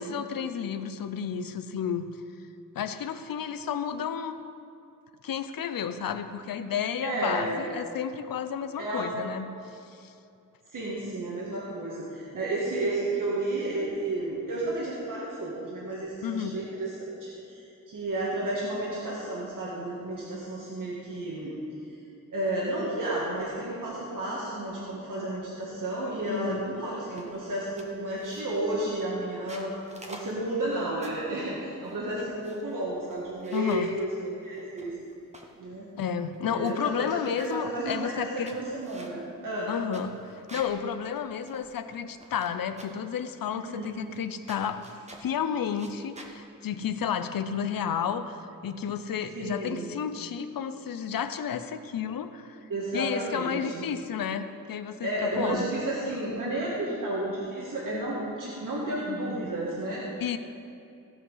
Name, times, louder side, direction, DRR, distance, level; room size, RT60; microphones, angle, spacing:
voice 1, 0.0-2.1 2.7-4.4 5.2-9.5 9.9-10.1 16.2-16.6 26.3-26.7 33.5-33.9 36.0-38.6 39.7-44.9 45.2-52.6 52.9-55.7 60.2-60.4, left 7 dB, 85° left, 10 dB, 0.7 m, -32 dB
voice 2, 7.0-7.7 8.8-9.1 10.7-21.5 22.3-29.7 30.1-34.9 35.6-35.9 36.4-39.7 43.5-43.9 49.3-49.9 52.7-53.8 55.0-60.1, right 1 dB, 65° right, -6 dB, 1.8 m, -32 dB
sound 1, 27.2-27.5 27.8-28.7 29.3-31.3 31.8-32.7 33.1-33.9 34.5-35.6 36.0-36.1 36.3-36.7 37.0-37.7 38.2-40.8 41.1-41.2 41.5-42.5 42.8-43.1 43.8-44.2 44.5-45.3 45.7-46.3, right 1 dB, 20° right, 1.1 m, -48 dB
16.0 x 5.6 x 5.7 m, 2.6 s
wide cardioid pair, 125°, 34 cm